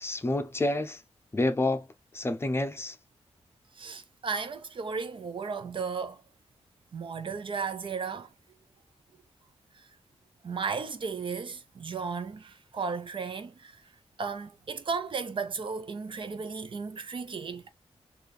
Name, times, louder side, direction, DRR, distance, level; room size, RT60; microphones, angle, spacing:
voice 1, 0.0-1.0 1.3-1.9 2.1-3.0, left 2 dB, 20° left, 0.7 m, -28 dB
voice 2, 3.8-6.2 6.9-8.3 10.4-13.8 14.2-17.7, right 5 dB, 50° right, 0.6 m, -35 dB
4.3 x 2.6 x 3.2 m
wide cardioid pair, 175°, 11 cm